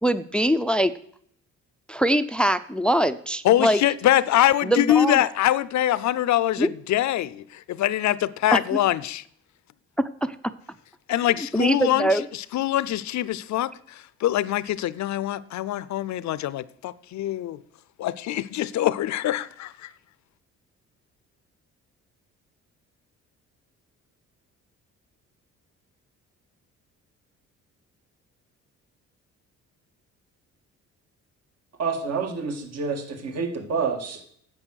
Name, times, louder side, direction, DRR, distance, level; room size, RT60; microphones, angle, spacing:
voice 1, 0.0-0.9 1.9-3.8 4.6-5.2 6.6-6.7 8.5-8.8 10.0-10.4 11.5-12.2, right 1 dB, 5° left, 0.5 m, -23 dB
voice 2, 3.4-9.2 11.1-17.6 18.0-19.9, left 13 dB, 65° left, 0.6 m, -24 dB
voice 3, 31.8-34.2, right 5 dB, 55° right, 1.9 m, -28 dB
9.8 x 7.5 x 6.4 m
cardioid pair, 90°, 30 cm